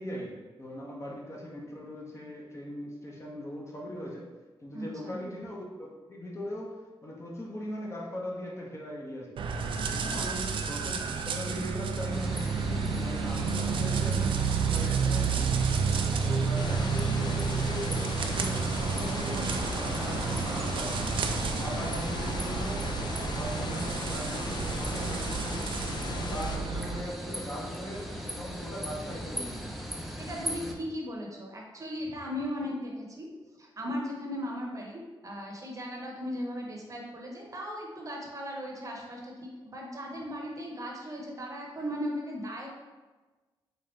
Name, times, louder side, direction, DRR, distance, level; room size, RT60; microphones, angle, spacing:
voice 1, 0.0-4.3 4.6-6.8 7.0-9.5 9.9-15.5 16.2-23.0 23.3-29.7, equal, 30° left, -2 dB, 0.9 m, -39 dB
voice 2, 4.7-5.2 10.0-10.3 30.2-33.3 33.5-42.7, equal, 35° right, -1 dB, 0.9 m, -37 dB
sound 1, 9.4-27.0, right 5 dB, 65° right, 0.4 m, -31 dB
sound 2, 12.1-30.8, equal, ahead, 0.6 m, -39 dB
sound 3, 16.6-26.6, left 3 dB, 50° left, 0.5 m, -37 dB
4.2 x 2.4 x 3.2 m, 1.3 s
cardioid pair, 65°, 9 cm